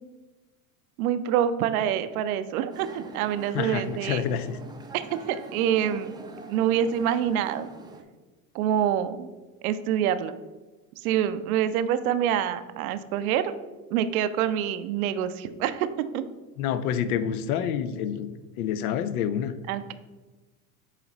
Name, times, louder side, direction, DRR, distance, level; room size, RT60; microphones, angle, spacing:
voice 1, 1.0-4.2 4.9-6.2 6.5-7.7 8.5-9.3 9.6-10.3 11.0-13.5 13.9-15.9 16.1-16.2 19.7-19.9, right 9 dB, 70° right, 12 dB, 0.6 m, -26 dB
sound 1, 2.7-8.0, right 3 dB, 10° right, 0.5 m, -44 dB
voice 2, 3.5-4.6 16.6-18.3 18.6-19.5, left 8 dB, 75° left, 13 dB, 0.7 m, -28 dB
8.2 x 3.1 x 4.0 m, 1.2 s
supercardioid pair, 105°, 44 cm